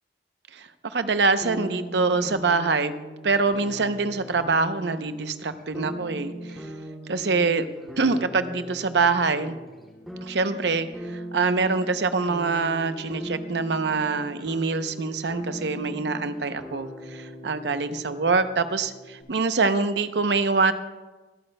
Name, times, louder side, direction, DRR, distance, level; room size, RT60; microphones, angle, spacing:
voice 1, 0.5-2.9 3.2-6.7 7.1-7.7 8.0-9.6 10.2-20.7, right 4 dB, 70° right, 10 dB, 0.7 m, -25 dB
sound 1, 1.4-19.2, right 1 dB, ahead, 2.5 m, -39 dB
24.0 x 8.7 x 2.2 m, 1.2 s
head